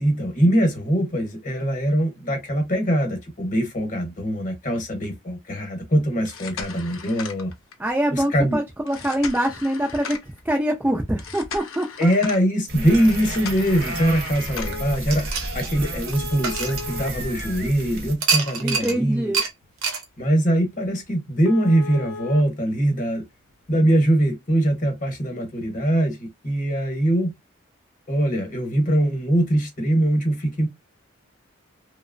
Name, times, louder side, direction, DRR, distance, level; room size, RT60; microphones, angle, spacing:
voice 1, 0.0-7.5 8.1-8.6 12.0-19.3 20.2-23.2 23.7-27.3 28.1-30.7, right 1 dB, 40° left, 0.9 m, -22 dB
sound 1, 6.1-7.9 8.9-10.4 11.2-12.4 13.0-14.9 16.1-18.0 18.4-18.5 19.1-19.2 19.6-19.8 20.0-20.1 20.5-20.6 20.9-21.0 21.4-22.4 23.5-23.6, left 5 dB, 80° left, 0.6 m, -37 dB
voice 2, 7.8-10.2 10.4-12.1 18.6-19.4, right 1 dB, 10° right, 0.3 m, -24 dB
sound 2, 12.7-18.1, right 1 dB, 50° right, 0.6 m, -32 dB
sound 3, 15.1-17.5 18.2-19.0 19.3-19.5 19.8-20.0, right 5 dB, 90° right, 0.7 m, -26 dB
2.8 x 2.0 x 2.4 m
head